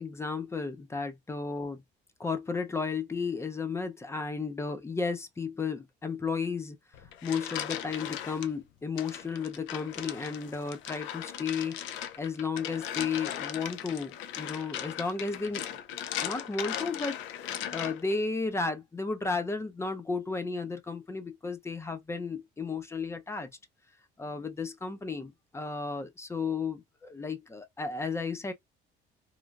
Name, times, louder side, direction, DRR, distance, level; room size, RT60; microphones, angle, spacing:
voice 1, 0.0-1.8 2.2-6.8 7.2-15.6 16.2-23.5 24.2-28.5, left 4 dB, 15° left, 0.5 m, -33 dB
sound 1, 6.9-8.5 9.0-18.2, left 10 dB, 80° left, 0.5 m, -38 dB
3.1 x 2.4 x 2.3 m
cardioid pair, 145°, 20 cm